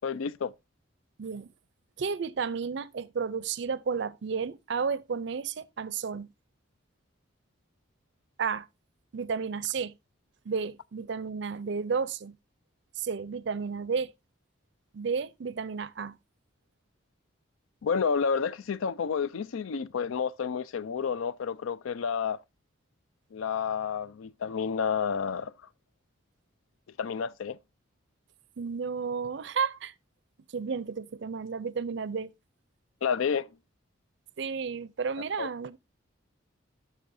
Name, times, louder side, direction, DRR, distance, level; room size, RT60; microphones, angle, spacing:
voice 1, 0.0-0.5 17.8-22.4 23.3-25.5 27.0-27.6 33.0-33.5 35.4-35.5, left 6 dB, 80° left, 0.4 m, -30 dB
voice 2, 1.2-1.5 2.0-6.3 8.4-8.7 9.1-9.9 10.5-12.4 13.0-14.1 14.9-16.2 28.6-29.9 30.5-32.3 34.4-35.8, right 5 dB, 55° right, 0.4 m, -32 dB
10.0 x 6.3 x 2.6 m
head